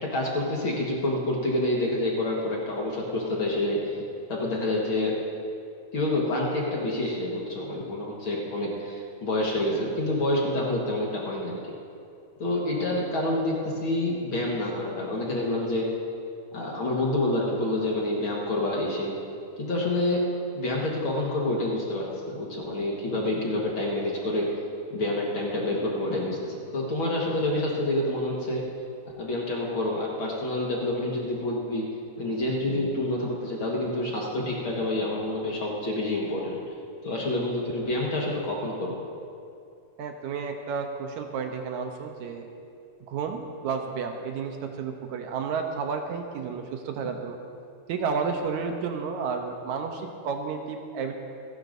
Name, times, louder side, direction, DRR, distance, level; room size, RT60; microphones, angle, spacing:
voice 1, 0.0-4.0 4.3-5.1 5.9-11.7 12.4-15.9 16.5-19.1 19.6-20.2 20.5-24.5 24.9-28.6 29.2-31.9 32.2-36.6 37.0-39.0, left 1 dB, 50° left, -3 dB, 1.9 m, -28 dB
voice 2, 40.0-42.5 43.1-47.4 47.9-51.1, right 5 dB, 75° right, 4 dB, 2.0 m, -31 dB
27.0 x 11.0 x 2.6 m, 2.5 s
omnidirectional pair, 3.6 m